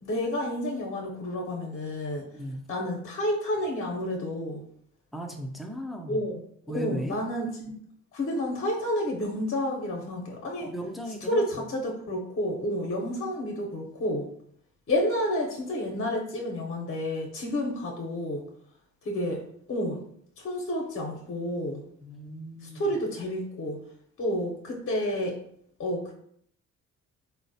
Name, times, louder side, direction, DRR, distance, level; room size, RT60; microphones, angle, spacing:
voice 1, 0.0-2.2 2.7-4.6 6.1-6.3 6.7-7.7 8.1-10.7 11.3-14.3 14.9-18.4 19.0-19.4 19.7-20.0 20.4-21.8 22.6-23.8 24.2-25.4 25.8-26.1, left 1 dB, 45° left, 0 dB, 0.6 m, -30 dB
voice 2, 5.1-6.2 6.7-7.2 10.6-11.4 22.0-22.9, equal, ahead, 2 dB, 0.4 m, -36 dB
3.7 x 2.1 x 2.6 m, 0.68 s
cardioid pair, 90°, 30 cm